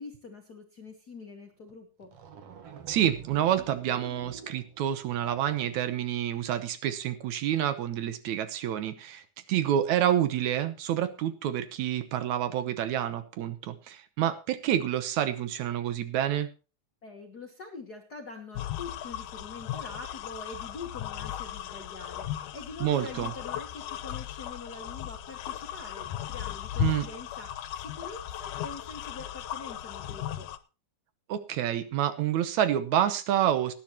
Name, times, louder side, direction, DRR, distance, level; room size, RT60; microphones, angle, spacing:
voice 1, 0.0-2.1 17.0-30.5, left 3 dB, 50° left, 2 dB, 1.2 m, -44 dB
sound 1, 1.7-1.8 2.0-5.8, right 8 dB, 55° right, 2.0 m, -47 dB
voice 2, 2.9-9.2 9.5-16.5 22.8-23.3 26.8-27.1 31.3-33.7, right 11 dB, 70° right, 11 dB, 2.2 m, -28 dB
sound 2, 18.5-30.6, left 12 dB, 80° left, 2.3 m, -36 dB
18.5 x 10.5 x 3.0 m, 0.32 s
omnidirectional pair, 3.6 m